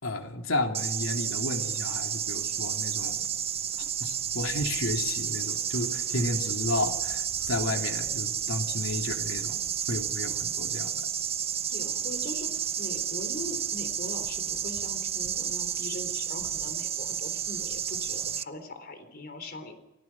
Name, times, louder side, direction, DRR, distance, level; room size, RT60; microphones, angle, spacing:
voice 1, 0.0-3.3 4.0-9.6 9.9-11.0, left 2 dB, 85° left, 3 dB, 3.0 m, -32 dB
sound 1, 0.7-18.4, right 9 dB, 30° right, 0.7 m, -31 dB
voice 2, 11.7-19.8, left 1 dB, 50° left, 8 dB, 3.8 m, -41 dB
29.0 x 18.0 x 6.1 m, 1.0 s
head